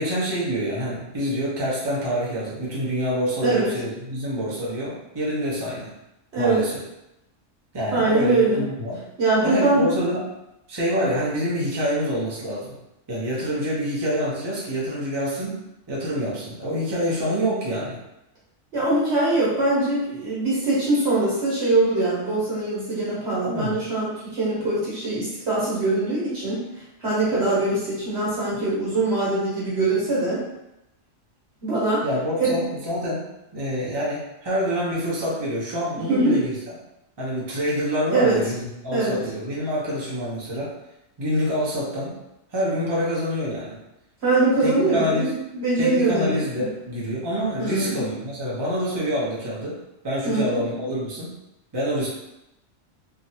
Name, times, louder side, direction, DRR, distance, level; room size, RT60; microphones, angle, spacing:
voice 1, 0.0-5.9 6.4-6.7 7.7-9.0 9.4-10.2 10.7-12.7 13.1-15.5 15.9-18.0 23.5-23.8 32.0-33.3 33.5-36.6 37.2-40.7 41.2-42.1 42.5-43.8 44.6-45.3 45.8-49.8 50.0-51.3 51.7-52.1, equal, 25° right, -7 dB, 0.6 m, -26 dB
voice 2, 7.9-8.6 9.2-9.9 18.7-26.6 27.0-30.4 31.6-32.0 32.4-32.6 36.1-36.4 38.1-38.4 38.9-39.2 44.2-46.7 47.6-48.0 50.2-50.6, right 2 dB, 60° right, -8 dB, 1.2 m, -22 dB
3.0 x 2.4 x 2.7 m, 0.89 s
omnidirectional pair, 1.3 m